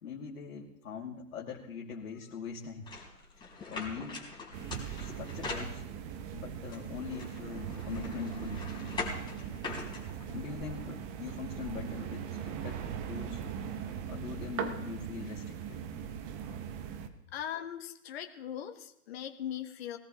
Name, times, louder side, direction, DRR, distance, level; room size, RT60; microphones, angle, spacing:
voice 1, 0.0-2.8 3.7-4.2 5.0-5.8 6.3-8.6 10.3-13.4 14.1-15.8 16.4-16.5, left 6 dB, 65° left, -3 dB, 2.6 m, -42 dB
sound 1, 2.9-6.2 6.7-10.6, left 3 dB, 10° left, 3.7 m, -42 dB
sound 2, 4.5-17.1, right 8 dB, 25° right, 1.0 m, -40 dB
voice 2, 17.3-20.0, left 10 dB, 40° left, 6 dB, 1.3 m, -40 dB
21.0 x 17.5 x 3.0 m, 0.82 s
hypercardioid pair, 130°, 45 cm